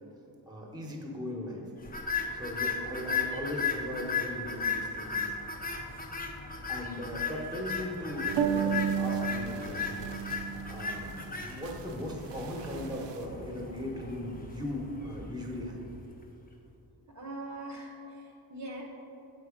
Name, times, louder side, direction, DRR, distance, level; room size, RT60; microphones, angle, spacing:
voice 1, 0.5-1.6 2.3-5.3 6.7-10.1 10.7-15.8, left 1 dB, 10° right, -1 dB, 1.0 m, -38 dB
sound 1, 1.8-16.2, left 5 dB, 20° left, 0.6 m, -36 dB
sound 2, 8.2-13.2, right 7 dB, 90° right, 0.6 m, -33 dB
voice 2, 17.1-18.8, right 1 dB, 45° right, -1 dB, 0.7 m, -41 dB
7.7 x 4.4 x 5.0 m, 2.9 s
wide cardioid pair, 175°, 42 cm